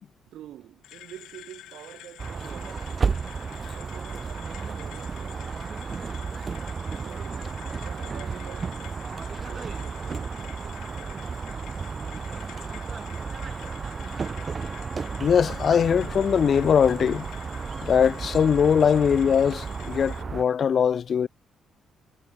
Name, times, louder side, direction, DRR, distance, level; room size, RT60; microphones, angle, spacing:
voice 1, 0.2-2.9 3.7-5.9 7.0-11.7, right 12 dB, 80° right, 5.6 m, -48 dB
Aluminum Exhaust Fan, 0.8-20.2, left 14 dB, 90° left, 2.6 m, -47 dB
kindergarden evening, 2.2-20.4, right 5 dB, 35° right, 1.0 m, -33 dB
Trumpet, 13.2-20.1, equal, ahead, 3.3 m, -48 dB
voice 2, 15.2-17.3 17.8-21.3, left 7 dB, 50° left, 0.9 m, -21 dB
cardioid pair, 115°, 0 cm